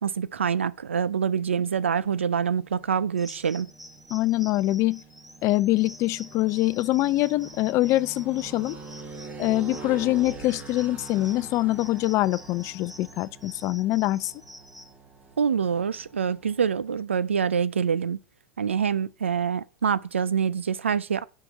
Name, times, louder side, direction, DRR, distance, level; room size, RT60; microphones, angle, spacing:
voice 1, 0.0-3.7 15.4-18.2 18.6-21.2, right 7 dB, 85° right, 0.5 m, -25 dB
sound 1, 1.5-17.0, right 4 dB, 25° right, 2.2 m, -45 dB
sound 2, 3.2-14.9, equal, ahead, 0.9 m, -48 dB
voice 2, 4.1-5.0 5.4-8.8 9.4-14.3, left 17 dB, 45° left, 0.5 m, -24 dB
7.0 x 5.9 x 7.3 m
hypercardioid pair, 85°, 6 cm